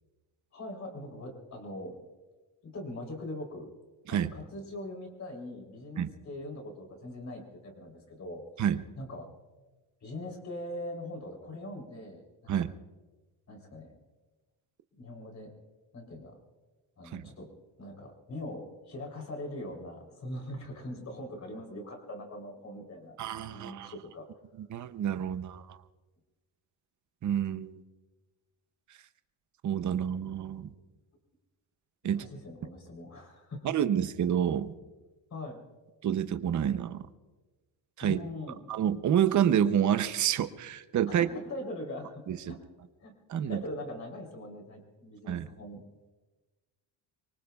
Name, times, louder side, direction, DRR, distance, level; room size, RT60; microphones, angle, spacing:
voice 1, 0.5-1.9 2.6-3.7 4.1-8.4 9.0-9.3 10.0-12.7 13.5-14.0 14.9-15.5 15.9-16.4 17.0-17.5 17.8-23.2 23.5-24.3 32.0-33.7 35.3-35.6 38.0-38.6 41.1-42.6 43.0-43.2 43.5-45.8, left 1 dB, 35° left, 2 dB, 3.5 m, -41 dB
voice 2, 23.2-23.9 24.7-25.8 27.2-27.8 29.6-30.7 32.0-32.2 33.6-34.7 36.0-37.1 38.0-38.2 38.7-41.3 42.3-42.5 43.3-43.6 45.3-45.5, right 9 dB, 40° right, 11 dB, 0.7 m, -28 dB
24.5 x 24.0 x 2.3 m, 1.2 s
cardioid pair, 170°, 49 cm